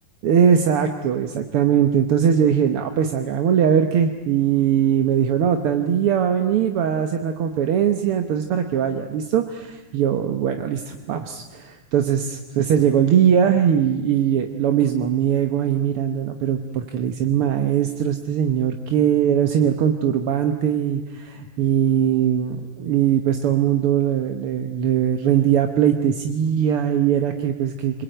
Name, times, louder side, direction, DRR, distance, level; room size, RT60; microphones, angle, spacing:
voice 1, 0.2-28.0, right 9 dB, 60° right, 6 dB, 1.7 m, -20 dB
29.5 x 21.5 x 9.1 m, 1.3 s
omnidirectional pair, 3.5 m